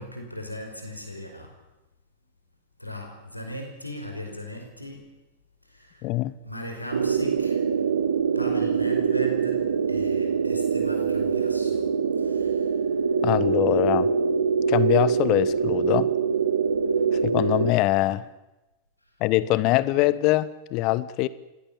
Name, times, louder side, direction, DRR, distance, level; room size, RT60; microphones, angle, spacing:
voice 1, 0.0-1.6 2.8-5.2 5.7-6.1 6.4-7.7 8.4-11.9 12.2-12.8, equal, 90° left, 5.3 m, -38 dB
voice 2, 6.0-6.4 13.2-14.1 14.7-16.1 17.1-18.2 19.2-21.3, left 17 dB, 40° left, 1.2 m, -23 dB
sound 1, 6.9-17.7, right 6 dB, 70° right, 1.4 m, -24 dB
25.0 x 17.0 x 9.1 m
figure-of-eight pair, 90°, 0 cm